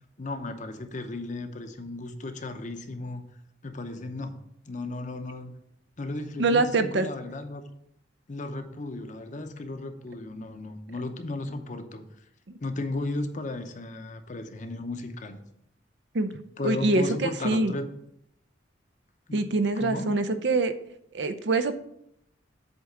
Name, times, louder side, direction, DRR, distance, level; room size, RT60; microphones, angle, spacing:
voice 1, 0.2-3.2 3.6-4.4 4.7-5.5 6.0-7.6 8.3-12.1 12.6-15.4 16.6-17.9 19.3-19.4 19.7-20.1, left 2 dB, 45° left, 7 dB, 0.7 m, -35 dB
voice 2, 6.4-7.1 16.1-16.3 16.6-17.7 19.3-20.7 21.1-21.8, right 2 dB, 65° right, 9 dB, 0.6 m, -24 dB
8.1 x 3.5 x 6.5 m, 0.75 s
head